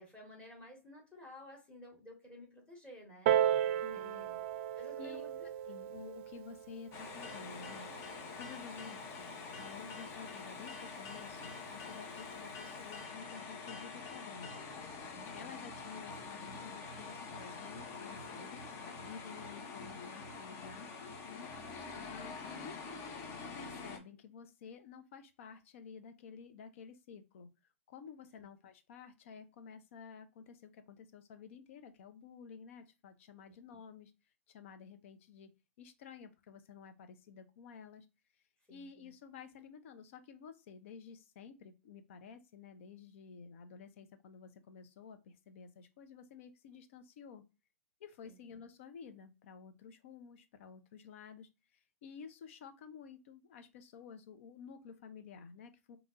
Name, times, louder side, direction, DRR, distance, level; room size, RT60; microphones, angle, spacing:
voice 1, 0.0-3.3 3.9-4.5 4.8-5.5 15.3-15.5 21.9-22.1 28.4-28.5 33.5-33.6 38.7-38.9 48.2-48.4, left 1 dB, 15° left, -1 dB, 2.0 m, -54 dB
Piano, 3.3-8.4 9.3-9.4, right 10 dB, 55° right, 0.4 m, -35 dB
voice 2, 3.8-4.3 5.0-5.2 5.7-14.6 15.1-18.7 19.0-22.8 23.5-27.5 27.9-34.1 34.5-35.5 35.8-38.1 38.7-47.4 48.0-56.0, left 6 dB, 60° left, 10 dB, 0.8 m, -52 dB
sound 1, 6.9-24.0, left 4 dB, 35° left, 1.0 m, -46 dB
4.9 x 3.0 x 2.6 m, 0.28 s
hypercardioid pair, 115°, 8 cm